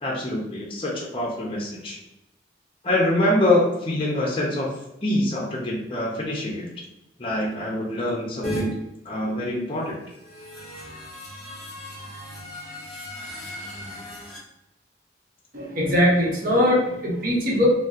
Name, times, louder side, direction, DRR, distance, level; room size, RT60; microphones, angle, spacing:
voice 1, 0.0-2.0 2.8-4.7 5.0-6.7 7.2-8.7 9.0-10.0, left 1 dB, 30° left, -3 dB, 0.6 m, -25 dB
sound 1, 8.4-8.6 10.0-14.4, equal, ahead, 1.0 m, -36 dB
voice 2, 15.5-17.7, left 1 dB, 50° right, -4 dB, 0.9 m, -21 dB
4.1 x 2.0 x 2.4 m, 0.87 s
head